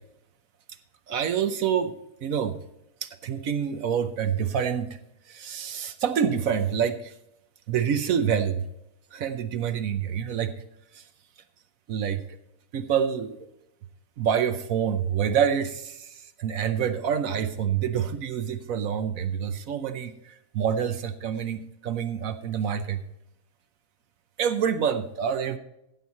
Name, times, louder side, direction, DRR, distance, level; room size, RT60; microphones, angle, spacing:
voice 1, 1.1-1.9 2.2-2.6 3.0-5.0 5.3-7.1 7.7-8.7 9.1-10.6 10.9-11.0 11.9-12.2 12.7-13.4 14.2-23.0 24.4-25.6, right 8 dB, 65° right, 10 dB, 1.1 m, -27 dB
13.5 x 7.8 x 4.1 m, 0.85 s
omnidirectional pair, 1.6 m